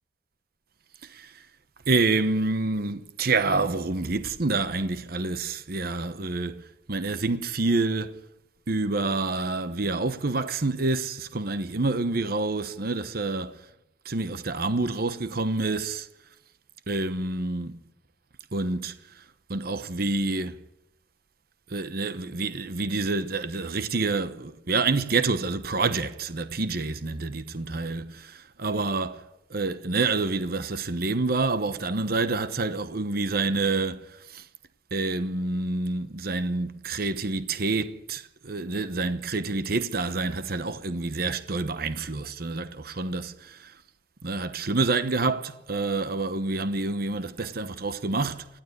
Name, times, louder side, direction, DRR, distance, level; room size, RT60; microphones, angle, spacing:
voice 1, 1.0-1.5 1.9-8.2 8.7-13.6 14.0-16.1 16.9-17.8 18.5-19.2 19.5-20.6 21.7-29.2 29.5-34.5 34.9-43.7 44.2-48.5, right 3 dB, 55° right, 1.0 m, -28 dB
20.0 x 15.0 x 9.8 m
head